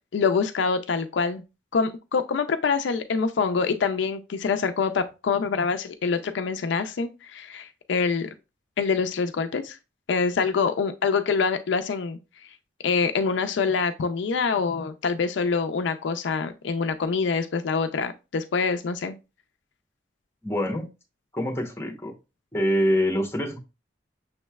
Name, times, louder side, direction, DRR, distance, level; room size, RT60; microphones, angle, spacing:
voice 1, 0.1-1.4 1.7-8.3 8.8-9.8 10.1-12.2 12.8-19.1, left 5 dB, 70° left, 0.4 m, -25 dB
voice 2, 20.4-20.9 21.3-22.1 22.5-23.6, equal, 15° left, 0.8 m, -25 dB
6.3 x 3.1 x 2.2 m
head